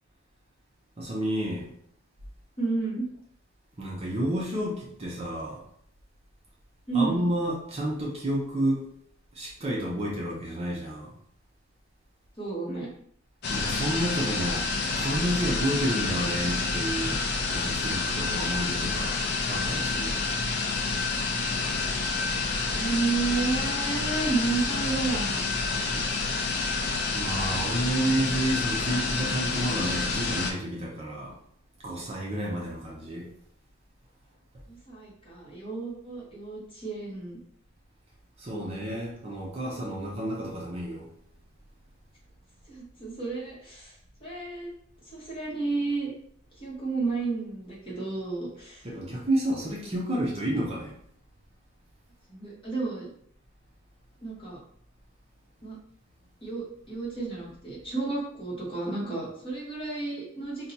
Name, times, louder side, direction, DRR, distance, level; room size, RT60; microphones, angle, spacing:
voice 1, 1.0-1.7 3.8-5.6 6.9-8.8 9.3-11.1 13.5-14.7 15.0-19.2 19.5-20.2 27.1-31.4 31.8-33.3 38.4-41.1 48.8-50.9, right 1 dB, 25° right, -4 dB, 0.5 m, -30 dB
voice 2, 2.6-3.0 6.9-7.3 12.4-12.9 22.7-26.1 34.7-37.4 38.5-38.8 42.7-43.9 44.2-44.7 45.0-46.1 46.6-48.8 52.3-53.1 54.2-54.6 55.6-55.8 56.4-60.7, right 3 dB, 25° left, -6 dB, 1.0 m, -32 dB
sound 1, 13.4-30.5, left 3 dB, 45° left, 0.4 m, -28 dB
2.7 x 2.2 x 3.9 m, 0.67 s
head